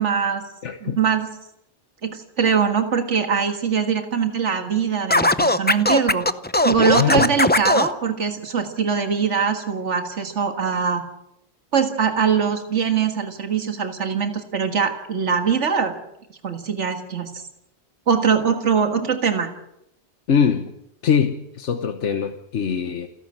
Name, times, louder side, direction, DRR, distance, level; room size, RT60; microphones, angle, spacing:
voice 1, 0.0-0.5 0.8-1.3 2.0-6.3 6.6-11.0 11.7-15.9 16.4-17.5 18.1-19.5, right 6 dB, 80° right, 6 dB, 2.1 m, -22 dB
voice 2, 0.6-1.0 6.9-7.3 20.3-20.7 21.0-23.1, left 7 dB, 80° left, 7 dB, 1.3 m, -22 dB
Scratching (performance technique), 5.1-7.9, left 2 dB, 10° left, 0.5 m, -18 dB
29.0 x 12.0 x 7.8 m, 0.81 s
omnidirectional pair, 1.2 m